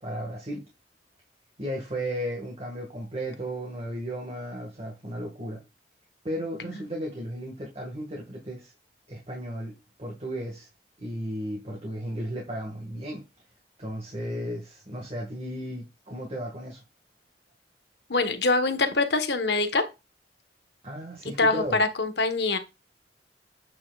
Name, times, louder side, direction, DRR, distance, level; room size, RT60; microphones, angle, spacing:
voice 1, 0.0-0.6 1.6-5.6 6.2-8.7 9.1-10.7 11.0-13.2 13.8-16.8 20.8-21.8, equal, 35° right, 1.8 m, -34 dB
voice 2, 18.1-19.8 21.4-22.6, left 3 dB, 70° left, 1.3 m, -24 dB
8.6 x 7.3 x 2.4 m
head